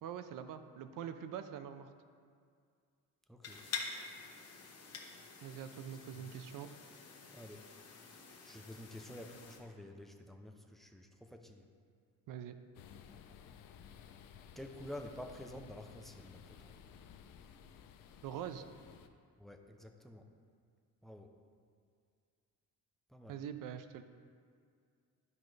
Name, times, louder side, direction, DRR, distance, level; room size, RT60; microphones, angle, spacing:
voice 1, 0.0-1.9 5.4-6.7 12.3-12.5 18.2-18.6 23.3-24.0, right 9 dB, 65° right, 10 dB, 0.6 m, -44 dB
voice 2, 3.3-3.6 6.2-6.3 7.3-7.6 8.1-11.7 14.6-16.7 19.4-20.2 21.0-21.3 23.1-23.4, left 1 dB, ahead, 4 dB, 0.4 m, -50 dB
sound 1, 3.4-9.6, left 5 dB, 45° left, 1.1 m, -48 dB
sound 2, 12.7-19.1, left 8 dB, 70° left, 0.6 m, -56 dB
12.0 x 5.2 x 3.2 m, 2.2 s
cardioid pair, 140°, 36 cm